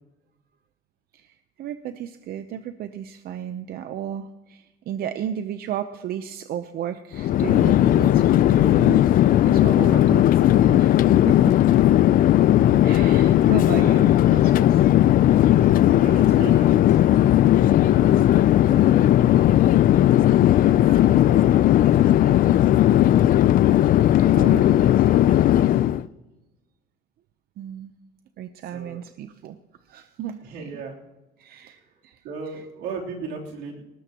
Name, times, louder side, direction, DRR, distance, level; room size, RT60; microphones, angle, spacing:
voice 1, 1.1-9.0 9.4-11.6 12.8-14.8 24.3-24.8 27.6-27.9 28.4-29.6 29.9-30.7 31.4-32.2, right 10 dB, 65° right, 9 dB, 0.8 m, -34 dB
Chatter / Fixed-wing aircraft airplane, 7.1-26.0, left 12 dB, 55° left, 0.4 m, -17 dB
voice 2, 12.8-14.1 16.0-17.5 18.3-20.0 20.4-22.9 23.5-24.0 24.3-25.9 28.7-29.0 30.4-31.0 31.5-31.9 32.2-33.8, right 4 dB, 90° right, -2 dB, 3.4 m, -39 dB
19.5 x 19.0 x 3.0 m, 1.1 s
cardioid pair, 110°, 17 cm